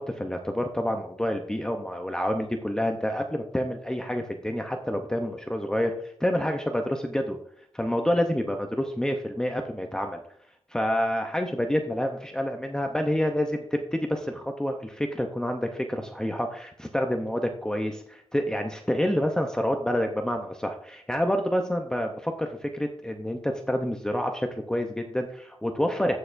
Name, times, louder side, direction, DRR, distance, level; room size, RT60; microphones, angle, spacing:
voice 1, 0.2-7.4 7.7-10.2 10.7-26.2, equal, 5° left, 3 dB, 0.6 m, -28 dB
14.5 x 6.5 x 2.5 m, 0.68 s
wide cardioid pair, 165°, 11 cm